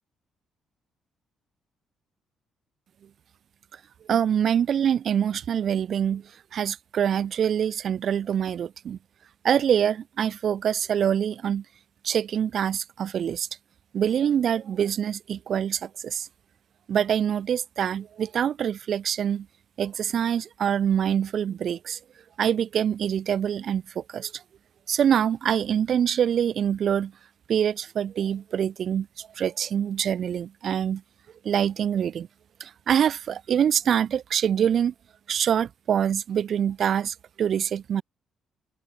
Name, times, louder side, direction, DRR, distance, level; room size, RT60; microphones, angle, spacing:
voice 1, 4.1-6.2 6.5-9.0 9.4-11.6 12.0-13.5 13.9-16.3 16.9-19.5 19.8-22.0 22.4-24.4 24.9-27.1 27.5-31.0 31.4-32.3 32.6-34.9 35.3-38.0, right 9 dB, 55° right, 1.5 m, -25 dB
cardioid pair, 100°, 0 cm